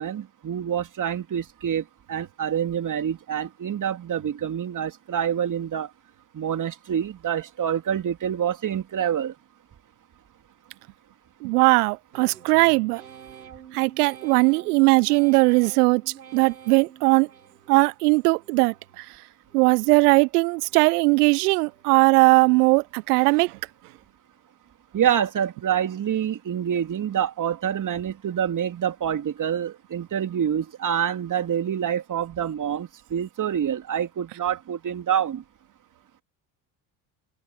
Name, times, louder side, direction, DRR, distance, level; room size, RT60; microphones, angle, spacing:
voice 1, 0.0-5.9 6.3-9.3 24.9-35.4, right 9 dB, 40° right, 2.9 m, -27 dB
voice 2, 11.4-13.0 13.7-16.0 16.3-17.3 17.7-19.0 19.5-23.5, right 27 dB, 65° right, 1.4 m, -19 dB
sound 1, 12.1-18.0 18.4-19.0 19.5-20.1 20.6-21.2 21.7-22.3 22.8-23.3, right 9 dB, 80° right, 5.9 m, -48 dB
figure-of-eight pair, 55°, 49 cm